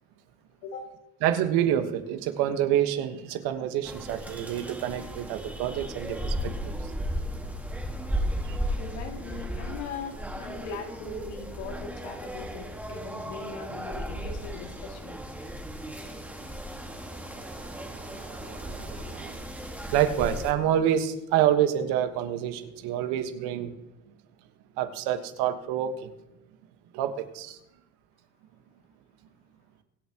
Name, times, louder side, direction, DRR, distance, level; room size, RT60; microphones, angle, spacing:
voice 1, 1.2-6.5 6.8-6.9 8.5-8.6 16.9-19.5 19.9-23.7 24.8-26.1 26.9-27.6, right 10 dB, 70° right, 1.5 m, -28 dB
sound 1, 3.8-20.5, equal, 5° right, 1.7 m, -35 dB
voice 2, 8.8-15.2, left 4 dB, 80° left, 2.3 m, -40 dB
23.5 x 8.3 x 3.0 m
supercardioid pair, 85°, 39 cm